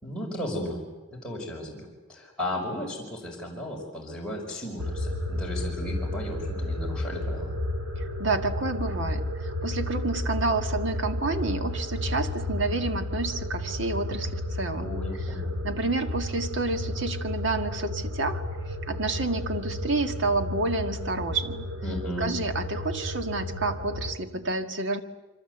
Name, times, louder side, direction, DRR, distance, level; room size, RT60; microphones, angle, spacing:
voice 1, 0.0-0.8 1.1-7.5 14.8-15.5 21.8-22.3, left 1 dB, 5° left, -4 dB, 5.4 m, -35 dB
sound 1, 4.8-24.1, left 1 dB, 85° right, 4.2 m, -32 dB
voice 2, 8.0-14.9 15.6-21.7 22.2-25.0, right 3 dB, 60° right, 7 dB, 1.9 m, -29 dB
27.0 x 25.0 x 8.0 m, 1.2 s
head